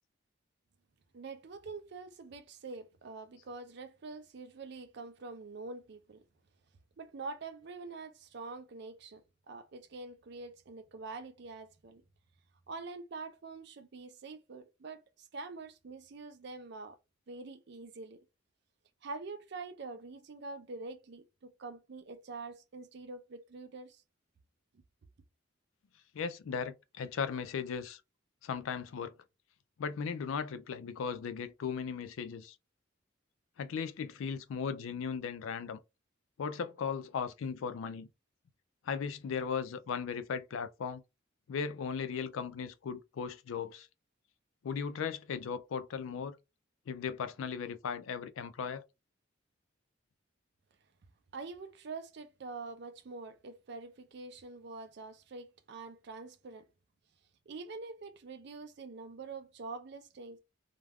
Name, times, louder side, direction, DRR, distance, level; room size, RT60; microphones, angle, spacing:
voice 1, 1.1-6.2 7.0-12.0 12.7-17.0 17.3-18.2 19.0-24.0 51.3-56.6 57.5-60.4, right 3 dB, 55° right, 0.4 m, -45 dB
voice 2, 26.1-28.0 28.4-29.1 29.8-32.6 33.6-35.8 36.4-38.1 38.9-41.0 41.5-43.9 44.6-46.4 46.9-48.8, left 6 dB, 80° left, 0.3 m, -37 dB
2.3 x 2.2 x 3.3 m
head